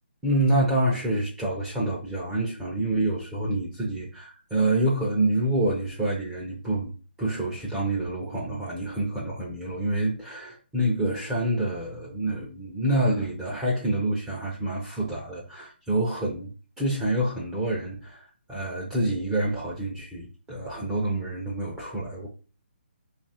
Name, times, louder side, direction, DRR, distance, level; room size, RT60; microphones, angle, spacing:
voice 1, 0.2-6.9 7.2-16.5 16.8-22.3, right 1 dB, 10° right, 0.6 m, -27 dB
2.7 x 2.5 x 4.1 m
hypercardioid pair, 155°, 6 cm